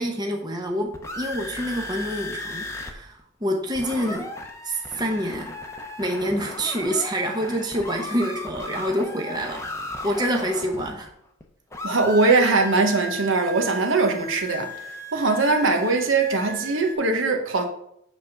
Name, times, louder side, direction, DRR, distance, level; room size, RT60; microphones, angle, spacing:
voice 1, 0.0-4.3 4.6-5.6 6.0-9.6 10.0-11.1, equal, 20° right, 0.8 m, -27 dB
sound 1, 0.7-2.9 3.2-3.3 3.5-11.4 11.7-16.9, left 1 dB, 15° left, 0.8 m, -36 dB
voice 2, 11.8-17.7, right 3 dB, 70° right, 1.1 m, -21 dB
8.2 x 3.6 x 5.8 m
head